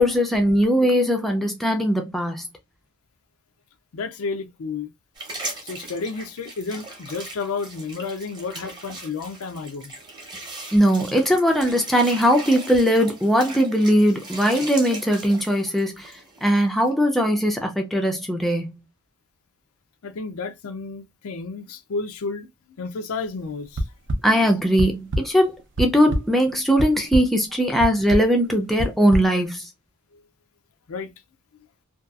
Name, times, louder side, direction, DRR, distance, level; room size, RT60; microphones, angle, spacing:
voice 1, 0.0-2.5 10.7-16.1 16.4-18.8 24.2-29.6, equal, ahead, 0.4 m, -20 dB
voice 2, 3.9-4.9 5.6-9.9 20.0-22.5 22.8-23.8 30.1-30.2 30.9-31.1, left 4 dB, 70° left, 0.5 m, -31 dB
sound 1, 5.2-16.9, right 2 dB, 20° right, 0.8 m, -39 dB
sound 2, 23.8-24.2 24.8-25.2 25.6-26.2 26.8-27.2 27.8-28.2 28.8-29.2, equal, 55° right, 0.5 m, -23 dB
2.6 x 2.3 x 2.2 m
head